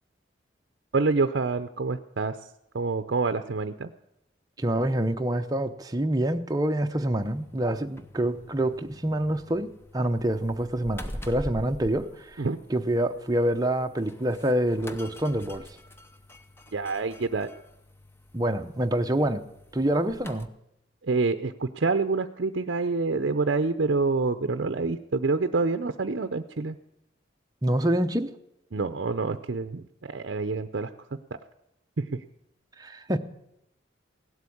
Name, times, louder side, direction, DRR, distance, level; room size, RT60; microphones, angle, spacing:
voice 1, 0.9-2.3 2.7-3.9 12.4-12.6 16.7-17.5 21.0-26.8 28.7-30.9 32.0-32.1, right 3 dB, 60° right, 0.6 m, -27 dB
voice 2, 4.6-15.7 18.3-19.4 19.7-20.5 27.6-28.3 32.8-33.2, right 1 dB, 20° right, 0.7 m, -26 dB
sound 1, 7.2-20.5, equal, 10° left, 0.8 m, -45 dB
17.0 x 8.1 x 8.5 m
head